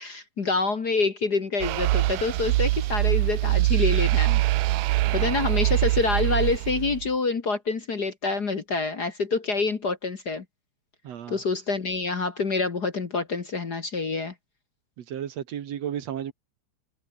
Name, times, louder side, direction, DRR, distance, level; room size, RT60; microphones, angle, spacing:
voice 1, 0.0-4.4 5.1-10.4 11.3-14.3, left 4 dB, 40° left, 2.0 m, -27 dB
sound 1, 1.6-7.1, right 18 dB, 85° right, 2.0 m, -23 dB
voice 2, 5.0-5.3 11.0-11.4 15.0-16.3, right 9 dB, 65° right, 2.5 m, -34 dB
omnidirectional pair, 3.3 m